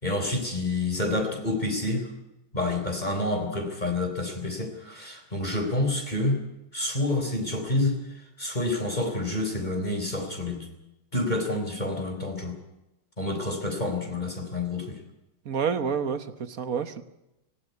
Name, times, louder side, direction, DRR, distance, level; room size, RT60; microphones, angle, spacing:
voice 1, 0.0-2.1 2.5-6.4 6.7-7.9 8.4-10.7 11.1-12.6 13.2-15.0, left 2 dB, 20° left, 4 dB, 3.8 m, -28 dB
voice 2, 15.5-17.0, right 6 dB, 50° right, 11 dB, 1.4 m, -28 dB
18.0 x 17.0 x 9.5 m, 0.92 s
omnidirectional pair, 2.1 m